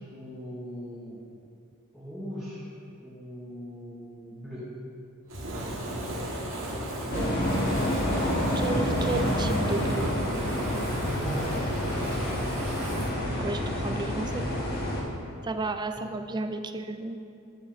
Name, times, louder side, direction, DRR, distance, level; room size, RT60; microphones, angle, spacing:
voice 1, 0.1-1.2 1.9-2.7 3.0-4.7 10.9-11.6 16.0-16.2, equal, ahead, -9 dB, 1.1 m, -39 dB
Fire, 5.3-13.1, right 1 dB, 65° right, 1.5 m, -34 dB
sound 1, 7.1-15.0, left 1 dB, 45° left, 1.4 m, -28 dB
voice 2, 7.1-10.1 13.4-14.5 15.4-17.2, right 3 dB, 20° right, 8 dB, 0.4 m, -33 dB
10.5 x 8.2 x 3.2 m, 2.6 s
head